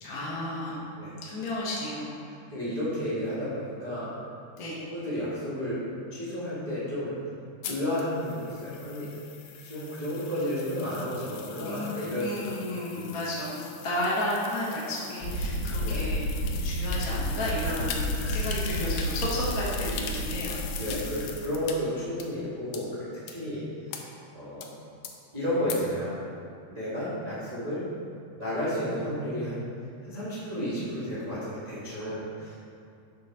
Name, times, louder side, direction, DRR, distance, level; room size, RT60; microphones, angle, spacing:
voice 1, 0.0-0.9 1.2-2.1 4.6-4.8 11.6-20.7, left 1 dB, 45° left, -7 dB, 1.2 m, -33 dB
voice 2, 2.5-4.1 4.8-5.8 6.1-7.1 7.7-9.1 9.6-12.6 12.9-13.1 15.8-16.0 17.6-18.5 19.8-20.3 20.8-23.6 24.3-24.7 25.3-26.2 26.7-27.9 28.3-29.7 30.0-32.6, equal, 25° right, -11 dB, 0.8 m, -32 dB
sound 1, 7.6-21.7 22.2-22.3 22.7-22.8 23.3-23.4 23.9-24.0 24.6-24.7 25.0-25.1 25.7-25.8, left 7 dB, 80° left, 1.5 m, -41 dB
sound 2, 15.2-21.4, equal, 65° left, 1.6 m, -31 dB
8.3 x 3.9 x 5.9 m, 2.5 s
omnidirectional pair, 3.7 m